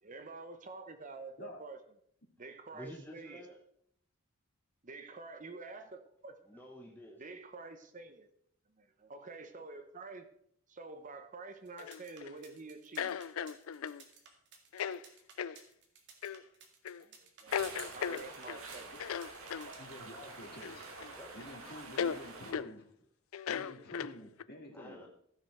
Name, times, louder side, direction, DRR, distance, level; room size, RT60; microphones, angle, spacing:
voice 1, 0.0-1.8 2.4-3.5 4.8-6.6 7.2-8.3 8.8-10.3 10.7-13.2 17.0-18.9, right 3 dB, 35° right, 9 dB, 0.8 m, -48 dB
voice 2, 2.7-3.6 6.5-7.2 21.1-21.4 24.0-24.3 24.7-25.1, equal, 10° left, -1 dB, 1.0 m, -50 dB
sound 1, 11.7-20.0, right 6 dB, 55° right, 1.9 m, -58 dB
sound 2, 11.8-12.3 13.0-14.0 14.7-15.0 15.4-15.6 16.2-16.4 16.8-17.0 17.5-18.6 19.0-19.7 20.6-21.1 21.4-21.5 22.0-22.2 22.5-22.7 23.3-24.4, left 8 dB, 70° left, 0.4 m, -37 dB
sound 3, 17.5-22.5, right 3 dB, 70° right, 1.9 m, -48 dB
voice 3, 19.8-21.0 21.3-22.9 23.5-25.0, left 1 dB, 50° left, 0 dB, 2.5 m, -50 dB
14.5 x 6.2 x 4.5 m, 0.68 s
head